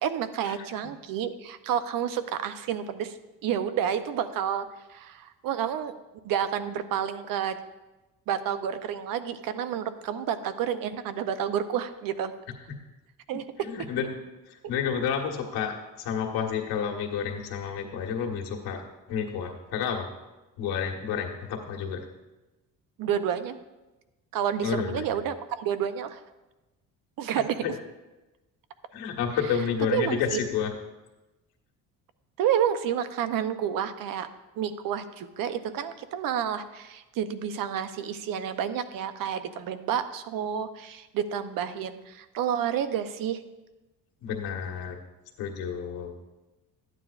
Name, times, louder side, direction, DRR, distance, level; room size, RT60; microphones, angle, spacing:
voice 1, 0.0-5.9 6.2-7.6 8.3-12.3 13.3-13.7 23.0-23.6 24.3-26.2 27.2-27.6 29.9-30.4 32.4-34.3 34.6-43.4, right 9 dB, 65° right, 11 dB, 0.7 m, -30 dB
voice 2, 13.6-14.2 14.5-18.8 19.1-20.1 20.6-22.0 24.6-25.2 27.6-27.7 28.9-30.7 44.2-45.0 45.4-46.1, left 7 dB, 85° left, 1 dB, 1.5 m, -30 dB
13.5 x 9.2 x 2.4 m, 1.1 s
cardioid pair, 125°, 36 cm